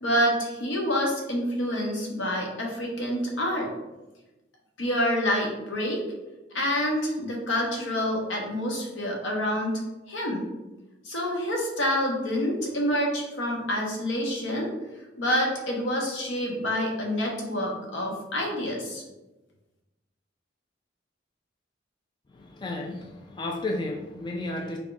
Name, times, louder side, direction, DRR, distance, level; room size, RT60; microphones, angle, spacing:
voice 1, 0.0-3.7 4.8-6.0 6.5-9.8 10.1-10.5 11.0-14.7 15.2-19.0, equal, 80° left, -1 dB, 0.9 m, -27 dB
voice 2, 22.3-24.8, left 2 dB, 25° left, 2 dB, 0.3 m, -33 dB
3.4 x 2.3 x 3.9 m, 1.0 s
head